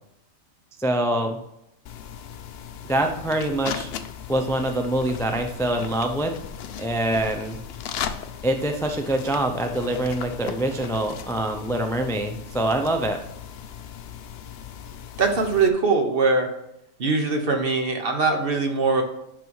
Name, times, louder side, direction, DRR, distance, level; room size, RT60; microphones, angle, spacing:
voice 1, 0.8-1.4 2.9-3.9 4.3-6.3 6.8-7.6 8.4-13.2, right 1 dB, 5° left, 5 dB, 0.4 m, -25 dB
sound 1, 1.9-15.7, left 8 dB, 60° left, 0.7 m, -37 dB
voice 2, 15.2-16.5 17.0-19.0, right 4 dB, 45° right, 5 dB, 1.2 m, -21 dB
10.5 x 4.1 x 4.7 m, 0.83 s
omnidirectional pair, 1.4 m